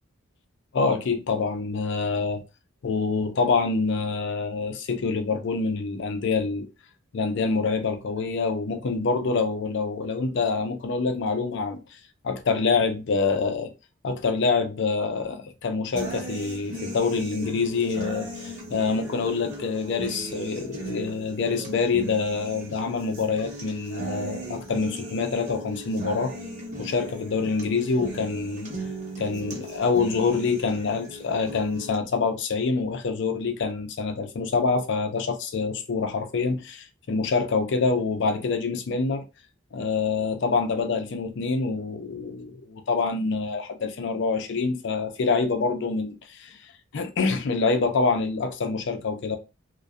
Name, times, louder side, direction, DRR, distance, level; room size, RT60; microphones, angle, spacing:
voice 1, 0.7-2.4 2.8-6.7 7.1-11.8 12.2-13.7 14.0-26.3 26.8-28.7 29.2-39.2 39.7-49.4, left 4 dB, 60° left, 0.4 m, -26 dB
sound 1, 15.9-32.0, right 1 dB, 35° right, 0.7 m, -37 dB
2.6 x 2.1 x 2.2 m
head